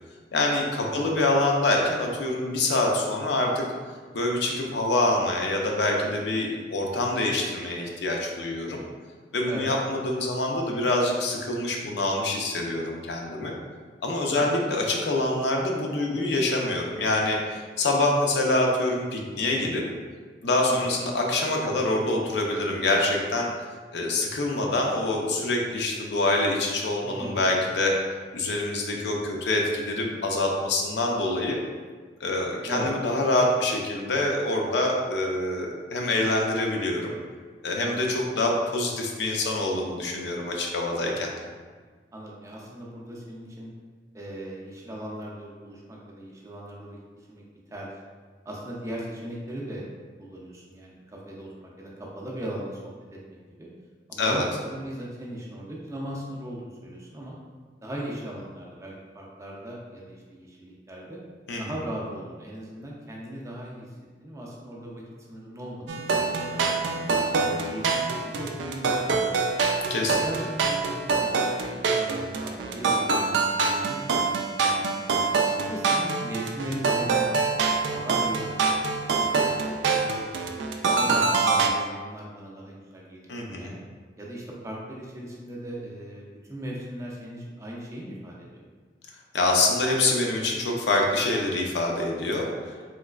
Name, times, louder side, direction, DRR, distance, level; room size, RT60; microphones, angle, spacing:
voice 1, 0.3-3.7 4.1-8.8 9.3-13.5 14.0-19.8 20.4-23.5 23.9-28.0 28.3-31.6 32.2-37.1 37.6-41.3 54.2-54.5 61.5-61.6 69.9-70.3 83.3-83.7 89.3-92.5, left 2 dB, 75° left, 0 dB, 0.5 m, -25 dB
voice 2, 0.9-1.2 9.4-9.7 14.3-14.5 20.6-21.0 27.0-27.4 32.6-32.9 37.8-38.1 42.1-43.7 44.1-47.9 48.4-49.9 50.2-52.8 53.3-53.7 54.1-57.4 57.8-61.2 61.6-63.9 64.2-65.0 65.3-66.9 67.3-69.5 70.2-75.0 75.5-80.4 80.9-83.3 83.5-83.8 84.2-88.7, right 1 dB, 15° right, -3 dB, 0.4 m, -38 dB
sound 1, 65.9-81.7, right 4 dB, 85° right, 0.3 m, -25 dB
3.2 x 3.0 x 2.3 m, 1.5 s
head